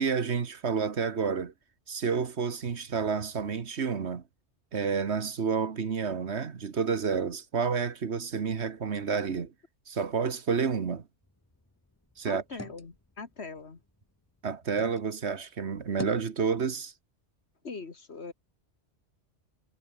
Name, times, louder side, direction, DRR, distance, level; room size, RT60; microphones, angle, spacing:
voice 1, 0.0-1.5 1.9-4.2 4.7-9.5 9.9-11.1 12.2-12.4 14.4-16.9, right 6 dB, 65° right, 1.6 m, -30 dB
sound 1, 11.2-15.0 15.5-16.3, left 2 dB, 15° left, 1.2 m, -47 dB
voice 2, 12.3-13.8 17.6-18.3, left 4 dB, 65° left, 2.3 m, -41 dB
omnidirectional pair, 1.2 m